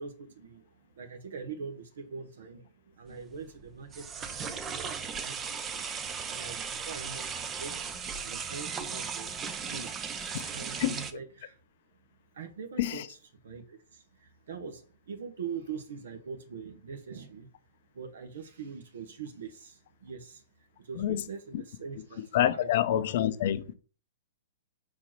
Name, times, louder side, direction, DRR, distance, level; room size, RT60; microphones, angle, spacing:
voice 1, 0.0-7.9 8.2-9.3 9.6-9.9 10.5-11.6 12.3-13.0 13.4-17.5 17.9-20.4 20.8-23.3, right 6 dB, 65° right, 1.3 m, -43 dB
sound 1, 3.1-11.1, right 6 dB, 20° right, 0.7 m, -37 dB
voice 2, 22.3-23.7, left 12 dB, 50° left, 0.7 m, -27 dB
4.7 x 4.3 x 5.9 m
figure-of-eight pair, 115°, 0 cm